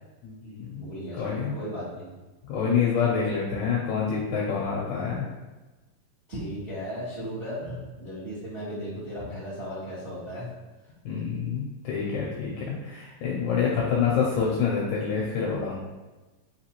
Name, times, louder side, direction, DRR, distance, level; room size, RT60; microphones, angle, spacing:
voice 1, 0.2-1.5 2.5-5.3 11.0-15.8, left 6 dB, 80° left, -4 dB, 1.7 m, -27 dB
voice 2, 0.7-2.0 6.3-10.5 13.7-14.2, equal, 55° right, -11 dB, 0.7 m, -36 dB
5.5 x 2.9 x 2.9 m, 1.2 s
omnidirectional pair, 4.0 m